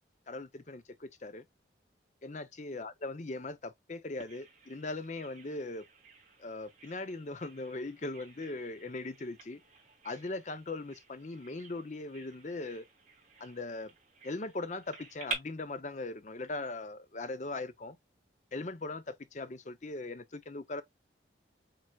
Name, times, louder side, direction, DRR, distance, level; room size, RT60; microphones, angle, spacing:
voice 1, 0.3-1.5 2.2-5.9 6.4-9.6 10.0-12.8 13.4-13.9 14.2-18.0 18.5-20.8, left 2 dB, 40° left, 0.6 m, -39 dB
Bird vocalization bird call bird song, 4.2-15.4, right 3 dB, 40° right, 3.2 m, -48 dB
7.6 x 3.0 x 2.3 m
head